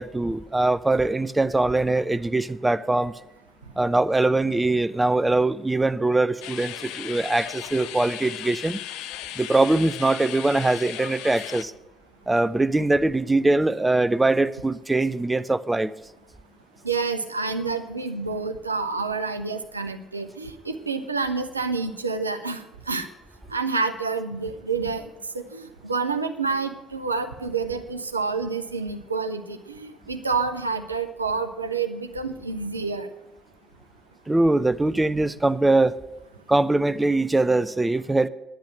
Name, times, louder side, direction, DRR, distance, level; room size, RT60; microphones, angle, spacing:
voice 1, 0.0-3.1 3.8-8.8 9.4-11.7 12.3-15.9 34.3-36.0 36.5-38.3, right 2 dB, 15° right, 0.6 m, -22 dB
sound 1, 6.4-11.6, left 12 dB, 70° left, 0.5 m, -36 dB
voice 2, 16.8-23.1 23.5-25.1 25.3-33.1, right 4 dB, 90° right, 0.6 m, -28 dB
10.5 x 10.0 x 6.3 m
figure-of-eight pair, 45°, 0 cm